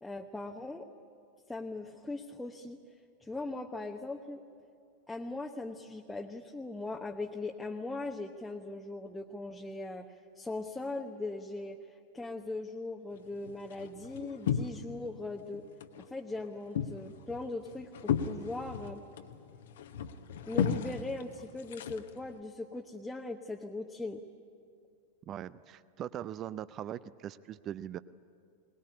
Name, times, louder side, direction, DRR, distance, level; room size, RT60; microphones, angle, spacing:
voice 1, 0.0-0.9 1.5-2.8 3.2-4.4 5.1-15.6 16.0-19.0 20.5-24.2, left 2 dB, 5° left, 1 dB, 1.0 m, -40 dB
sound 1, 13.1-15.1 15.4-16.1 16.4-22.4, left 8 dB, 60° left, 1.0 m, -35 dB
voice 2, 25.3-28.0, right 10 dB, 30° right, 16 dB, 0.5 m, -41 dB
21.5 x 20.0 x 9.8 m, 2.4 s
figure-of-eight pair, 90°, 0 cm